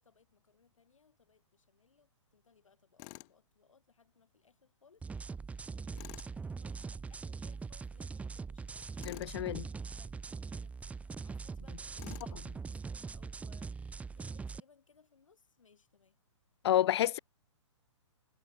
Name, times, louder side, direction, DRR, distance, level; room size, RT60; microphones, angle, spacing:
voice 1, 0.0-8.9 9.5-16.2, left 5 dB, 80° left, 6.6 m, -67 dB
Tools, 3.0-3.4 5.9-6.3 9.0-9.4 12.0-12.4, left 30 dB, 35° left, 0.9 m, -49 dB
sound 1, 5.0-14.6, right 4 dB, 10° right, 0.9 m, -42 dB
voice 2, 9.1-9.6 16.6-17.2, left 12 dB, 55° left, 0.4 m, -29 dB
hypercardioid pair, 130°, 16 cm